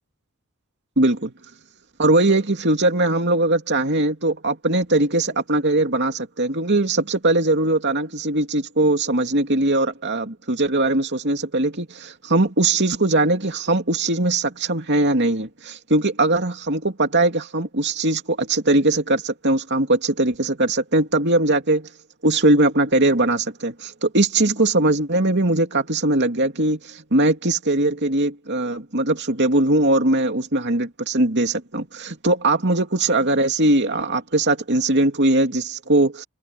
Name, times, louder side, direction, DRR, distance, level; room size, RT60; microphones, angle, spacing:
voice 1, 1.0-1.3 2.0-21.9 22.2-36.2, right 2 dB, 50° right, 2.8 m, -20 dB
head